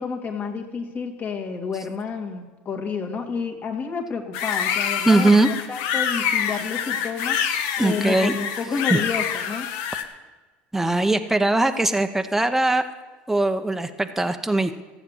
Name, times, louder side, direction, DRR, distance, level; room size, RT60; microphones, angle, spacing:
voice 1, 0.0-7.4 7.8-9.7, left 5 dB, 35° left, 2 dB, 2.1 m, -30 dB
sound 1, 4.3-10.0, left 8 dB, 70° left, 1.2 m, -26 dB
voice 2, 5.1-5.5 7.8-8.3 8.9-9.0 10.7-12.8 13.3-14.8, right 2 dB, 5° right, 7 dB, 0.9 m, -20 dB
14.0 x 8.0 x 7.3 m, 1.3 s
supercardioid pair, 95°, 5 cm